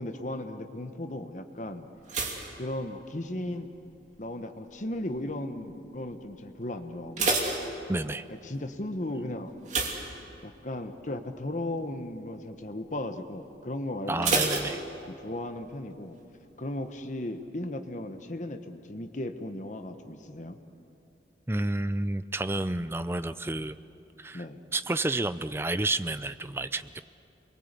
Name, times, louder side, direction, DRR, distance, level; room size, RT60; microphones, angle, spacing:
voice 1, 0.0-1.9 2.6-3.7 4.2-7.4 8.3-9.5 10.4-14.5 15.1-16.2 16.6-20.6 24.3-24.6, left 1 dB, 45° left, 8 dB, 1.2 m, -36 dB
sound 1, 2.1-3.6 3.8-4.3 4.9-5.3 5.6-5.7 6.1-6.2 6.8-8.4 9.6-10.8 11.1-11.4 11.8-11.9 14.2-15.4 15.7-15.8, right 3 dB, 40° right, 2.9 m, -30 dB
voice 2, 7.9-8.3 14.1-14.8 21.5-23.8 24.2-24.4 24.7-27.0, right 2 dB, 15° right, 12 dB, 0.5 m, -30 dB
28.5 x 22.5 x 8.3 m, 2.8 s
head